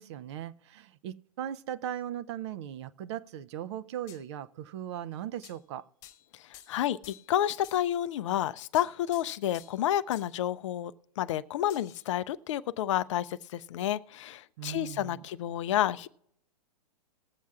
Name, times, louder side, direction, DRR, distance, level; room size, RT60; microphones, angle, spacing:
voice 1, 0.0-5.9 14.6-15.3, right 10 dB, 45° right, 15 dB, 0.5 m, -38 dB
sound 1, 4.1-4.2 5.4-5.6 6.0-6.3 6.5-7.4 7.6-7.9 8.7-9.9 10.1-10.3 11.7-12.1, left 13 dB, 35° left, 1.3 m, -52 dB
voice 2, 6.7-16.1, left 12 dB, 50° left, 15 dB, 0.4 m, -30 dB
20.0 x 7.2 x 2.3 m, 0.76 s
hypercardioid pair, 115°, 20 cm